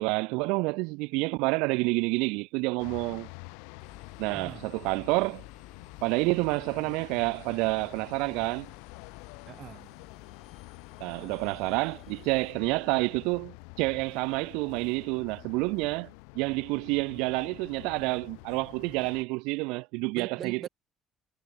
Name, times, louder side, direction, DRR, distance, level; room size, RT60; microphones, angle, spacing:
voice 1, 0.0-3.3 4.2-5.4 6.0-8.7 11.0-16.1 16.4-20.7, right 27 dB, 85° right, 0.3 m, -29 dB
sound 1, 2.8-19.2, left 40 dB or more, 90° left, 3.2 m, -48 dB
Engine, 3.8-12.5, left 6 dB, 40° left, 2.6 m, -57 dB
voice 2, 4.3-4.7 9.5-9.9 20.2-20.7, right 9 dB, 50° right, 1.9 m, -41 dB
supercardioid pair, 80°, 0 cm